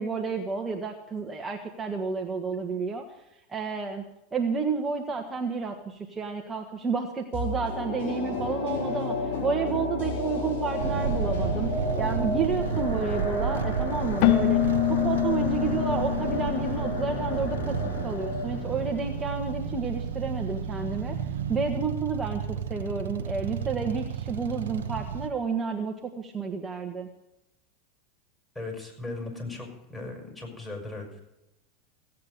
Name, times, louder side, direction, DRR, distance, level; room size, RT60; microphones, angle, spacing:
voice 1, 0.0-3.0 3.5-4.0 4.3-9.2 9.4-11.7 12.0-14.6 14.9-17.8 18.0-21.2 21.5-27.1, right 5 dB, 20° right, 2 dB, 1.5 m, -30 dB
sound 1, 7.3-20.4 20.7-20.8, left 1 dB, 80° left, 3.7 m, -32 dB
sound 2, 10.8-25.3, right 7 dB, 85° right, 1.1 m, -32 dB
Keyboard (musical), 14.2-17.8, left 21 dB, 60° left, 0.6 m, -26 dB
voice 2, 28.6-31.2, left 2 dB, 10° left, 2 dB, 5.5 m, -37 dB
16.5 x 8.5 x 6.6 m, 0.93 s
hypercardioid pair, 105°, 0 cm